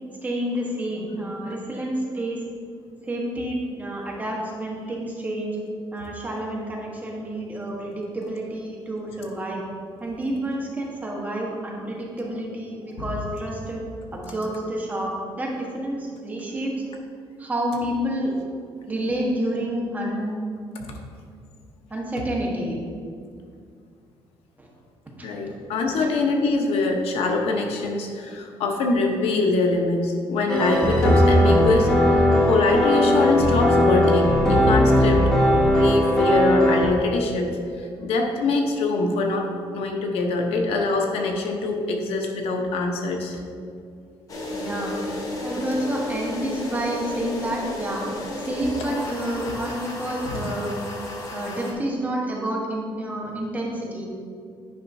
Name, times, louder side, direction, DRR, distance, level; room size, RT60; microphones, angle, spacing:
voice 1, 0.2-2.4 3.0-5.6 5.9-9.6 10.0-13.8 14.1-16.8 17.4-18.4 18.8-20.4 21.9-22.8 24.6-24.7 25.2-25.3 44.5-45.0 45.4-48.1 48.4-50.7 51.3-54.1, right 1 dB, 15° right, -3 dB, 1.2 m, -29 dB
voice 2, 25.2-35.3 35.7-37.5 37.8-39.5 39.7-43.4 50.3-50.4, left 3 dB, 85° left, 2 dB, 0.9 m, -24 dB
Bunny Hop-Intro, 30.5-36.9, left 1 dB, 5° left, 1.4 m, -18 dB
sound 1, 44.3-51.7, left 2 dB, 35° left, 1.1 m, -33 dB
9.2 x 5.5 x 2.7 m, 2.3 s
cardioid pair, 135°, 10 cm